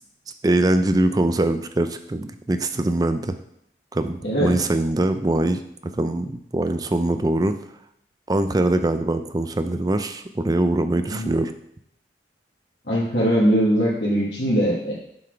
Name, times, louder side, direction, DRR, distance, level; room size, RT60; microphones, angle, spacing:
voice 1, 0.4-3.4 3.9-7.6 8.3-11.5, right 1 dB, 20° right, 9 dB, 0.4 m, -22 dB
voice 2, 12.9-14.9, equal, 80° left, -9 dB, 1.8 m, -21 dB
7.5 x 4.1 x 4.6 m, 0.74 s
head